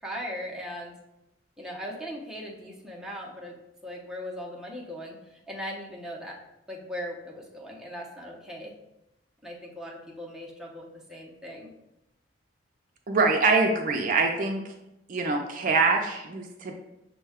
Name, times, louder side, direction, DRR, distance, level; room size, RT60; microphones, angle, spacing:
voice 1, 0.0-0.9 1.6-3.6 3.8-6.4 6.7-8.7 9.4-11.7, equal, 5° right, -3 dB, 0.6 m, -39 dB
voice 2, 13.1-14.6 15.1-16.7, right 3 dB, 45° right, 2 dB, 0.4 m, -24 dB
6.2 x 2.2 x 3.5 m, 0.89 s
head